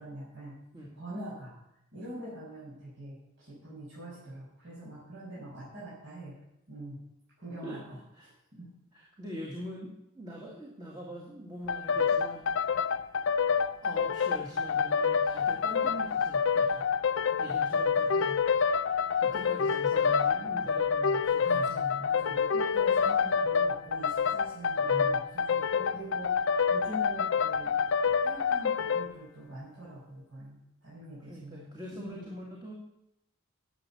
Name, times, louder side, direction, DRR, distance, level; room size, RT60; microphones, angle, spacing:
voice 1, 0.0-0.6 0.9-1.5 1.9-6.4 6.7-7.0 7.4-8.0 8.5-8.7 21.4-27.8 28.2-32.3, right 1 dB, 60° right, -9 dB, 5.8 m, -44 dB
voice 2, 8.9-12.5 12.8-12.9 13.8-16.9 17.4-18.5 19.2-22.1 24.8-25.2 31.2-32.8, equal, 20° right, -3 dB, 2.0 m, -43 dB
sound 1, 11.7-29.1, left 6 dB, 65° left, 0.5 m, -27 dB
11.5 x 7.3 x 7.1 m, 0.82 s
head